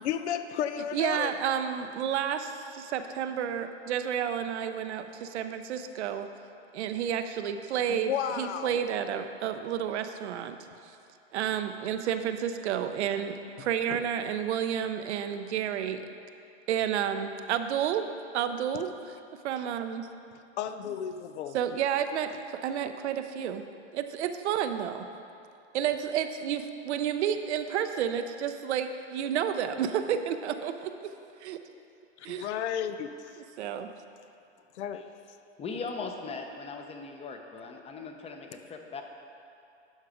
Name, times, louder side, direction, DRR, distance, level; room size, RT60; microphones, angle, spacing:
voice 1, 0.0-1.3 7.9-8.8 13.6-14.0 20.6-21.6 32.2-33.4 34.7-35.0, left 9 dB, 70° left, 10 dB, 0.6 m, -33 dB
voice 2, 0.9-6.3 6.7-10.6 11.3-16.1 16.7-18.1 18.3-18.9 19.4-20.1 21.5-23.7 23.9-25.0 25.7-30.9 31.4-31.6 32.2-32.5 33.6-33.9, right 9 dB, 70° right, 8 dB, 0.7 m, -30 dB
voice 3, 35.6-39.0, left 4 dB, 15° left, 4 dB, 0.7 m, -39 dB
12.0 x 4.7 x 5.0 m, 2.6 s
hypercardioid pair, 120°, 35 cm